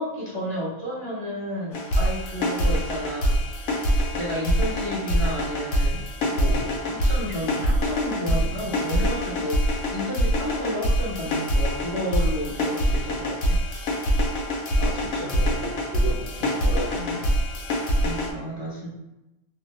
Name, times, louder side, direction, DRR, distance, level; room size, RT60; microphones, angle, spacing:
voice 1, 0.0-3.4 4.1-6.0 6.3-13.6 18.0-18.9, equal, 25° left, -8 dB, 1.0 m, -31 dB
sound 1, 1.7-18.3, equal, 85° left, 1.1 m, -24 dB
voice 2, 14.8-17.4, left 1 dB, 65° right, -5 dB, 0.7 m, -35 dB
2.7 x 2.1 x 3.0 m, 0.96 s
omnidirectional pair, 1.4 m